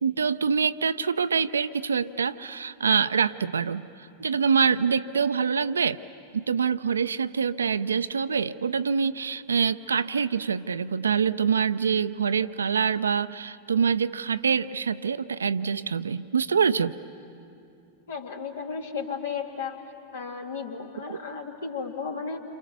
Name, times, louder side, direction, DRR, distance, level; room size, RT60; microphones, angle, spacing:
voice 1, 0.0-3.9 4.2-6.0 6.3-17.0 21.1-21.2, right 6 dB, 70° right, 14 dB, 0.5 m, -25 dB
voice 2, 18.1-19.8 20.1-22.4, left 5 dB, 60° left, 3 dB, 2.4 m, -34 dB
29.5 x 26.5 x 6.8 m, 2.6 s
figure-of-eight pair, 90°, 0 cm